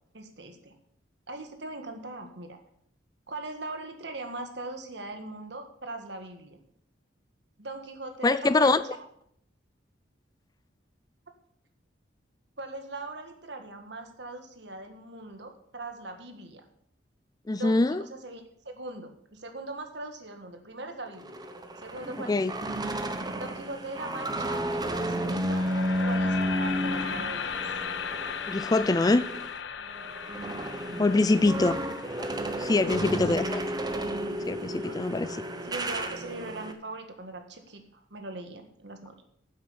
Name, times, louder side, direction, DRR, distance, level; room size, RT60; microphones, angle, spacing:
voice 1, 0.1-0.7 1.3-2.6 3.3-6.6 7.6-8.8 12.6-16.6 17.5-21.4 21.7-22.4 23.4-25.6 26.0-27.6 30.8-31.7 32.6-33.4 34.7-35.0 35.6-39.2, right 2 dB, 65° right, 6 dB, 1.7 m, -40 dB
voice 2, 8.2-8.8 17.5-18.0 22.3-22.5 28.5-29.2 31.0-31.7 32.6-33.6 34.5-35.4, left 2 dB, 20° left, 15 dB, 0.4 m, -23 dB
sound 1, 21.1-29.5 29.9-36.7, equal, 20° right, 0.9 m, -32 dB
sound 2, 25.2-35.3, left 7 dB, 70° left, 0.6 m, -38 dB
10.5 x 7.4 x 7.1 m, 0.68 s
head